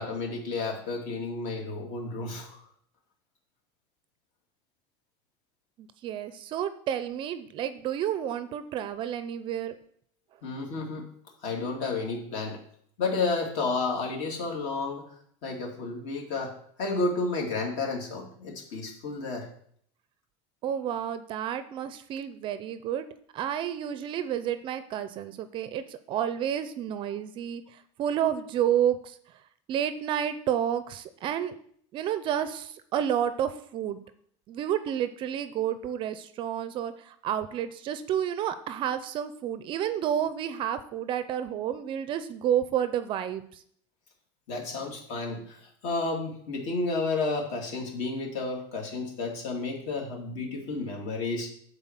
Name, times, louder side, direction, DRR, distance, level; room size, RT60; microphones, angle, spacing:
voice 1, 0.0-2.6 10.4-11.1 11.4-12.6 13.0-15.0 15.4-19.5 44.5-51.5, left 3 dB, 55° left, 0 dB, 2.5 m, -31 dB
voice 2, 5.8-9.8 20.6-23.1 23.3-29.2 29.7-31.5 31.9-34.0 34.5-43.6, right 10 dB, 35° right, 12 dB, 0.5 m, -30 dB
9.6 x 4.0 x 7.4 m, 0.64 s
cardioid pair, 160°, 15 cm